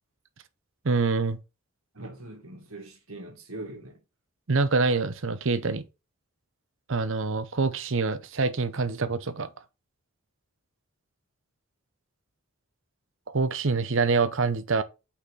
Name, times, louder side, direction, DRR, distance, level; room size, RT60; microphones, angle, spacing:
voice 1, 0.8-1.4 4.5-5.8 6.9-9.5 13.3-14.8, right 4 dB, 60° right, 0.8 m, -25 dB
voice 2, 1.9-4.0, right 2 dB, 75° right, 2.2 m, -41 dB
5.8 x 4.3 x 6.2 m
head